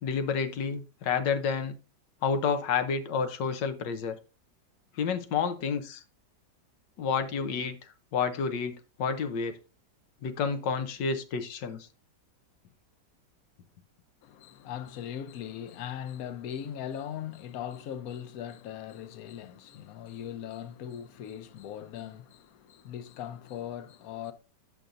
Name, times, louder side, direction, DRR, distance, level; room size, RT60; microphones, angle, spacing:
voice 1, 0.0-1.8 2.2-4.2 4.9-6.0 7.0-9.6 10.2-11.9, left 6 dB, 85° left, 1.5 m, -30 dB
voice 2, 14.2-24.3, left 10 dB, 65° left, 1.0 m, -39 dB
8.9 x 6.7 x 2.5 m
omnidirectional pair, 1.9 m